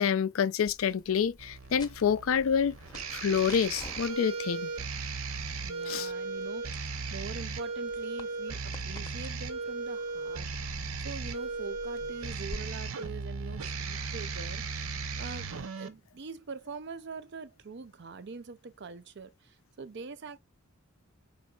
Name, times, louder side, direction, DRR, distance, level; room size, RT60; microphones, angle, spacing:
voice 1, 0.0-2.8 3.1-4.7 5.9-6.1, left 7 dB, 75° left, 0.4 m, -27 dB
sound 1, 0.7-12.6, left 1 dB, 20° left, 0.7 m, -50 dB
sound 2, 1.4-15.9, right 4 dB, 85° right, 0.8 m, -37 dB
voice 2, 5.6-20.4, right 4 dB, 55° right, 0.6 m, -44 dB
5.2 x 3.9 x 2.3 m
head